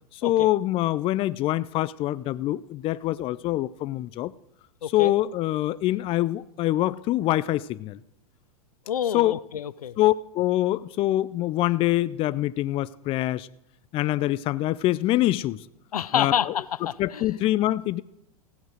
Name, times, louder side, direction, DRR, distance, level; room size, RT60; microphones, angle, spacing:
voice 1, 0.1-4.3 4.9-8.0 9.1-9.4 10.0-13.5 13.9-15.6 16.1-16.5 17.0-18.0, left 15 dB, 30° left, 0.4 m, -25 dB
voice 2, 8.9-9.9 15.9-17.3, left 9 dB, 85° left, 0.5 m, -28 dB
15.5 x 7.9 x 6.3 m
hypercardioid pair, 110°, 19 cm